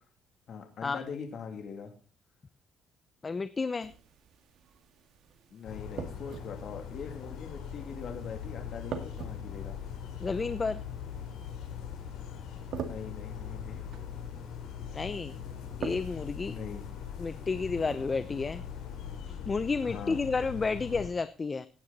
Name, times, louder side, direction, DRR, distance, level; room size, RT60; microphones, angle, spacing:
voice 1, 0.5-1.9 5.5-9.8 12.8-13.8 16.4-16.8 19.8-20.2, left 6 dB, 55° left, 4 dB, 3.0 m, -42 dB
voice 2, 3.2-3.9 10.2-10.8 14.9-15.4 15.8-16.5 17.2-18.6 19.5-21.7, left 4 dB, 25° left, 14 dB, 0.7 m, -31 dB
sound 1, 3.8-19.2, right 7 dB, 65° right, 2.1 m, -47 dB
sound 2, 5.6-21.1, left 8 dB, 85° left, 4.3 m, -41 dB
17.0 x 9.7 x 4.1 m, 0.36 s
cardioid pair, 110°, 0 cm